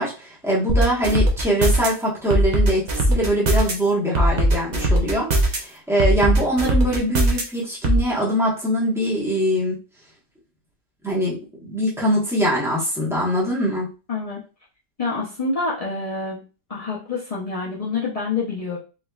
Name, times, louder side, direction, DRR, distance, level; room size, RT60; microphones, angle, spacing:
voice 1, 0.0-9.8 11.0-13.9, equal, ahead, -6 dB, 1.0 m, -23 dB
sound 1, 0.7-1.9 2.3-3.7 4.1-5.6 6.0-7.4 7.8-8.0, right 1 dB, 70° right, 0.4 m, -18 dB
voice 2, 14.1-14.4 15.0-16.4 16.7-18.8, left 4 dB, 60° left, -6 dB, 0.3 m, -27 dB
3.5 x 3.1 x 2.3 m, 0.33 s
omnidirectional pair, 1.7 m